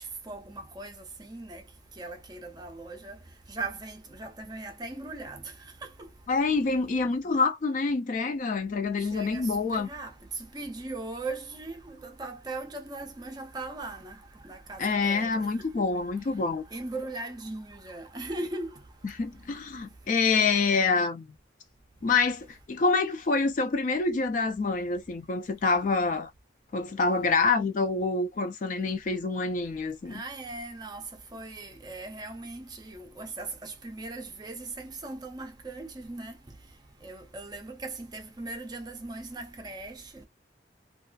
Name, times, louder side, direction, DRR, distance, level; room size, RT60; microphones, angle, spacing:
voice 1, 0.3-1.6 2.0-3.2 3.5-5.5 5.8-6.1 9.0-10.1 10.5-14.2 14.4-15.5 15.8-15.9 16.7-18.7 30.1-31.0 31.3-36.3 37.0-40.3, right 2 dB, 20° right, 0.4 m, -39 dB
voice 2, 6.3-9.9 14.8-16.6 19.0-21.3 22.0-26.3 26.7-30.2, left 4 dB, 40° left, 0.3 m, -26 dB
2.3 x 2.3 x 2.4 m
head